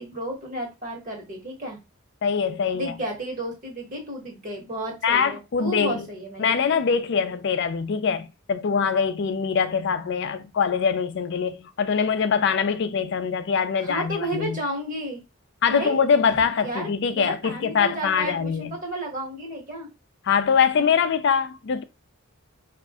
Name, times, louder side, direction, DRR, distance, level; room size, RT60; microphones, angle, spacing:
voice 1, 0.0-1.8 2.7-6.5 13.8-15.2 15.7-16.0 16.6-19.9, right 1 dB, 35° right, 1.3 m, -32 dB
voice 2, 2.2-2.9 5.0-6.1 6.4-14.6 15.6-18.7 20.2-21.8, left 6 dB, 50° left, 0.4 m, -23 dB
5.1 x 2.5 x 3.5 m
head